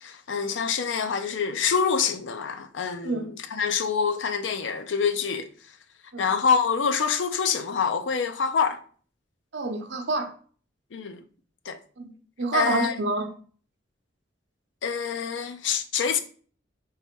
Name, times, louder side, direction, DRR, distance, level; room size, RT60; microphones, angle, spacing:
voice 1, 0.0-5.5 6.2-8.8 10.9-11.2 11.7-11.8 12.5-13.0 14.8-16.2, left 6 dB, 80° left, 0.5 m, -26 dB
voice 2, 9.5-10.3 12.0-12.1 12.4-13.3, right 3 dB, 70° right, 0.7 m, -27 dB
3.2 x 3.2 x 4.5 m
head